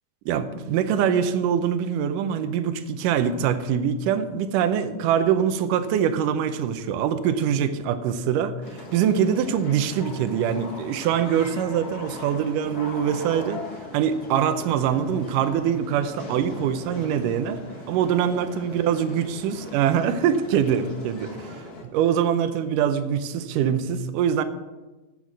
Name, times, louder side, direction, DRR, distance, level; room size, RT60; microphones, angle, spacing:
voice 1, 0.3-13.7 13.9-17.6 17.9-24.4, right 8 dB, 80° right, 11 dB, 2.3 m, -24 dB
sound 1, 8.6-21.8, left 2 dB, 45° left, 1.2 m, -40 dB
8.2 x 7.5 x 7.4 m, 1.2 s
omnidirectional pair, 3.8 m